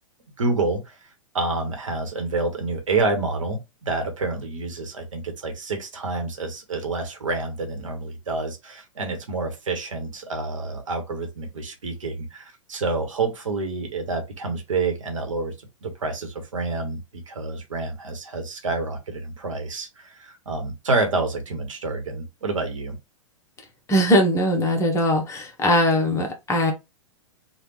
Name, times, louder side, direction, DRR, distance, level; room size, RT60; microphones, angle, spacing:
voice 1, 0.4-0.9 1.3-15.5 15.8-17.0 17.3-22.9, right 3 dB, 70° right, 1.1 m, -28 dB
voice 2, 23.9-26.7, equal, 15° left, 0.9 m, -20 dB
3.3 x 2.4 x 3.0 m
figure-of-eight pair, 105°, 17 cm